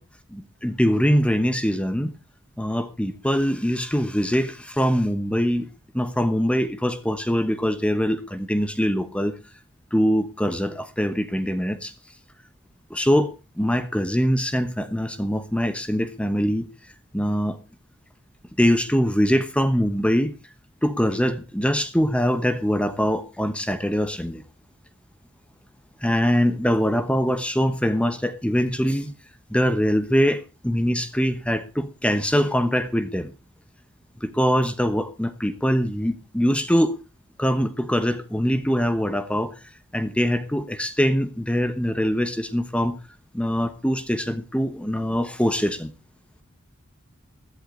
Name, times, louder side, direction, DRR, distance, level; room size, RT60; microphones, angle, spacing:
voice 1, 0.6-2.1 2.6-5.7 5.9-9.3 9.9-11.9 12.9-13.3 13.6-16.7 17.1-17.6 18.6-20.3 20.8-24.4 26.0-29.1 29.5-33.3 34.2-36.9 37.4-39.5 39.9-43.0 43.3-45.9, equal, 5° left, 1.0 m, -23 dB
16.5 x 11.5 x 3.8 m
head